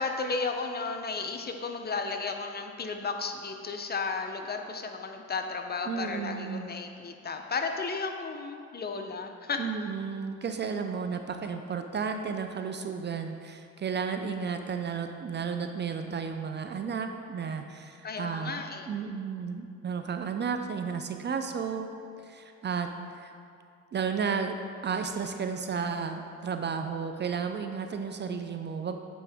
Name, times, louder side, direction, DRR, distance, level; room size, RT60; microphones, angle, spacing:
voice 1, 0.0-9.6 18.0-19.0, left 4 dB, 35° left, 4 dB, 0.6 m, -34 dB
voice 2, 5.9-6.7 9.6-21.9 22.2-23.3 23.9-24.6 24.8-29.0, right 6 dB, 35° right, 6 dB, 0.4 m, -33 dB
8.4 x 4.7 x 3.5 m, 2.4 s
cardioid pair, 90°, 30 cm